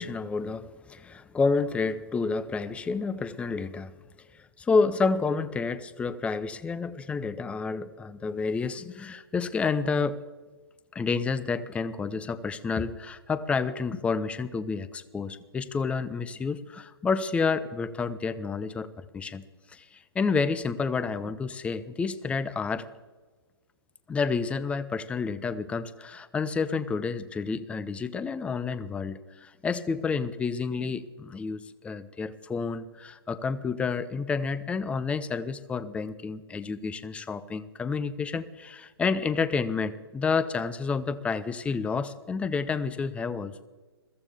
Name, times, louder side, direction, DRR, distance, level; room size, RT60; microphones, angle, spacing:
voice 1, 0.0-4.0 4.3-10.2 10.9-22.9 24.1-43.6, left 4 dB, 10° left, 15 dB, 0.6 m, -29 dB
22.0 x 14.5 x 3.5 m, 1.3 s
hypercardioid pair, 130°, 13 cm